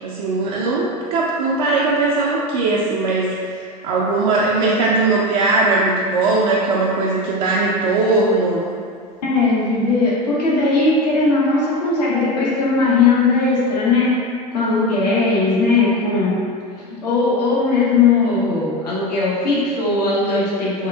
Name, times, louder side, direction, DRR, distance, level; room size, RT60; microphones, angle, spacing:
voice 1, 0.0-8.7, right 3 dB, 60° right, -6 dB, 0.4 m, -19 dB
voice 2, 9.2-14.2 14.5-16.4 16.7-20.9, left 3 dB, 75° left, -7 dB, 0.8 m, -18 dB
3.6 x 2.3 x 2.2 m, 2.1 s
figure-of-eight pair, 75°, 21 cm